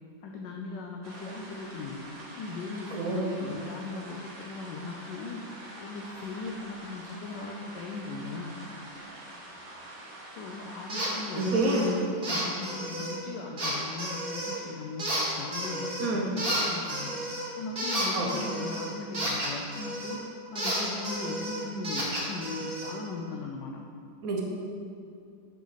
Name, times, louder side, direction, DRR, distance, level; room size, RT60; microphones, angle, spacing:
voice 1, 0.2-8.6 10.3-17.2 17.5-23.8, left 3 dB, 75° left, 0 dB, 1.1 m, -38 dB
sound 1, 1.0-12.0, right 1 dB, 85° right, 2.2 m, -45 dB
voice 2, 2.9-3.5 11.4-11.9 16.0-16.3 18.1-18.3 24.2-24.4, right 2 dB, 55° right, -1 dB, 1.1 m, -28 dB
sound 2, 10.9-11.1 11.4-11.9 12.2-13.2 13.6-14.6 15.0-16.1 16.4-20.2 20.6-22.9, right 1 dB, 35° right, 1.3 m, -32 dB
5.9 x 5.9 x 4.0 m, 2.4 s
omnidirectional pair, 2.1 m